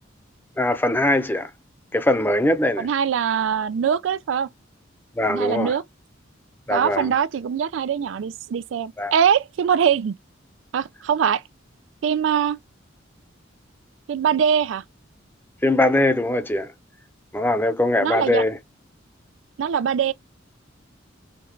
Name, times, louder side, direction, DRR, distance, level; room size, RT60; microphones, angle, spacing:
voice 1, 0.6-1.5 1.9-2.9 5.2-5.8 6.7-7.1 9.0-9.1 15.6-16.7 17.3-18.6, left 1 dB, 10° left, 0.7 m, -21 dB
voice 2, 2.8-4.5 5.3-5.8 6.7-10.1 10.7-11.4 12.0-12.6 14.1-14.8 18.0-18.4 19.6-20.1, right 7 dB, 70° right, 0.3 m, -22 dB
5.0 x 2.3 x 3.1 m
head